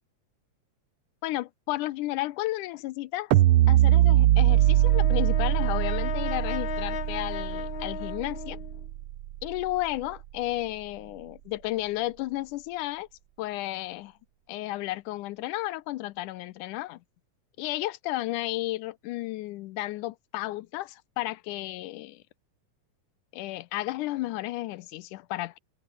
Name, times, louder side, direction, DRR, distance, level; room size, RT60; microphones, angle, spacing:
voice 1, 1.2-3.3 3.7-8.6 9.4-13.1 13.4-14.1 14.5-17.0 17.6-22.2 23.3-25.6, left 17 dB, 85° left, 2.2 m, -33 dB
sound 1, 3.3-9.6, right 14 dB, 85° right, 1.2 m, -22 dB
Brass instrument, 4.4-8.9, left 11 dB, 60° left, 1.3 m, -36 dB
omnidirectional pair, 3.5 m